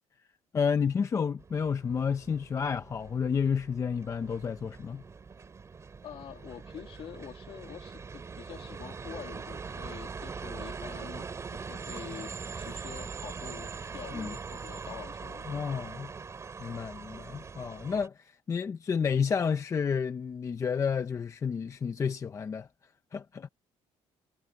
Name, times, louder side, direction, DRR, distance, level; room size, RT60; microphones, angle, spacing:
voice 1, 0.5-5.0 14.1-14.3 15.5-16.1 16.6-22.7 23.1-23.5, left 6 dB, 25° left, 0.6 m, -30 dB
sound 1, 1.4-18.1, right 5 dB, 25° right, 3.1 m, -42 dB
voice 2, 6.0-15.5, left 10 dB, 50° left, 2.2 m, -46 dB
cardioid pair, 165°, 12 cm